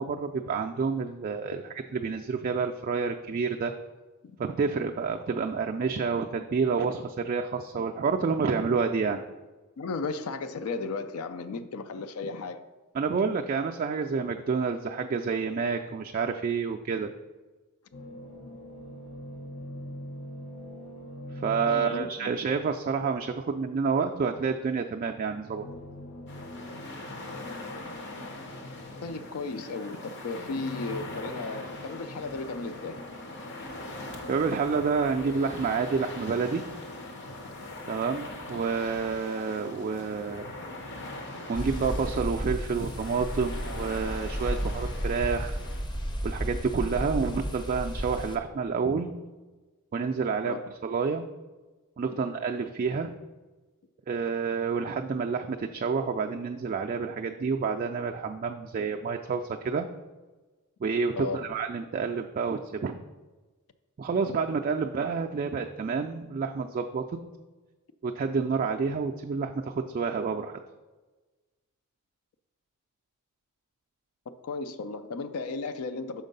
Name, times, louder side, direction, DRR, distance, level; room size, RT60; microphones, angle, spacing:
voice 1, 0.0-1.6 1.9-3.7 4.4-9.2 12.9-17.1 21.3-25.7 34.3-36.7 37.9-40.5 41.5-45.6 46.2-49.1 49.9-51.2 52.0-53.1 54.1-59.9 60.8-63.0 64.0-67.2 68.0-70.6, right 5 dB, 40° right, 0.3 m, -29 dB
voice 2, 9.8-12.6 21.7-22.3 29.0-33.0 37.4-37.5 50.4-50.6 61.1-61.4 74.3-76.2, left 3 dB, 70° left, 0.4 m, -35 dB
sound 1, 17.9-22.5 25.4-29.5 30.4-35.6, left 1 dB, 85° left, 0.9 m, -44 dB
sound 2, 26.3-45.8, left 2 dB, 55° left, 0.9 m, -42 dB
sound 3, 41.5-48.4, equal, 20° left, 0.6 m, -33 dB
6.4 x 4.4 x 5.3 m
head